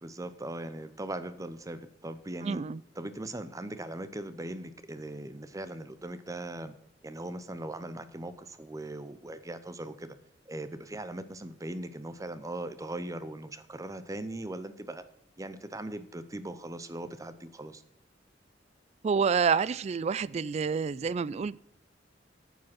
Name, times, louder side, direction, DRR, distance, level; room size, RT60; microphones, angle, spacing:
voice 1, 0.0-2.6 3.0-6.7 7.0-10.2 10.5-15.0 15.4-17.8, right 1 dB, 20° right, 0.7 m, -39 dB
voice 2, 2.4-2.8 19.0-21.6, right 6 dB, 35° right, 0.3 m, -28 dB
9.2 x 7.6 x 6.0 m
head